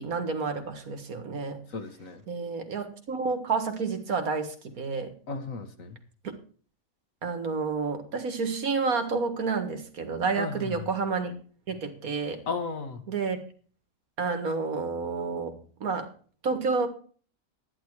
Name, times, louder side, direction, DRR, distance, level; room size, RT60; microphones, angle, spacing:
voice 1, 0.0-1.6 2.3-5.1 7.2-11.3 11.7-12.4 13.1-13.4 14.2-16.1 16.4-16.9, right 4 dB, 85° right, 7 dB, 2.2 m, -30 dB
voice 2, 1.7-2.2 5.3-6.0 10.4-10.9 12.5-13.0, left 4 dB, 70° left, 7 dB, 1.9 m, -35 dB
12.0 x 10.5 x 4.7 m, 0.43 s
omnidirectional pair, 1.5 m